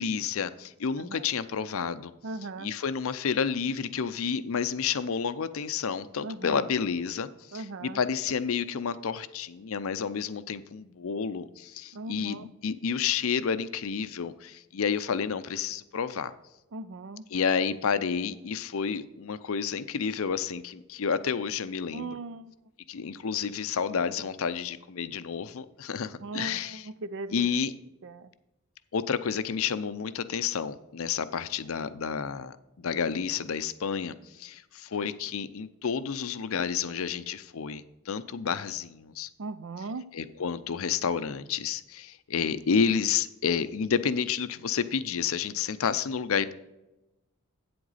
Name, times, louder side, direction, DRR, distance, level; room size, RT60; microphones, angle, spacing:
voice 1, 0.0-2.1 2.6-16.3 17.3-22.1 22.9-26.9 27.3-27.7 28.9-39.3 40.1-46.5, left 6 dB, 70° left, 0.5 m, -30 dB
voice 2, 2.2-2.7 6.2-6.7 7.5-8.0 11.9-12.5 16.7-17.3 21.9-22.5 26.2-27.5 28.0-28.3 39.4-40.1, right 3 dB, 60° right, 0.5 m, -38 dB
8.7 x 7.7 x 4.1 m
head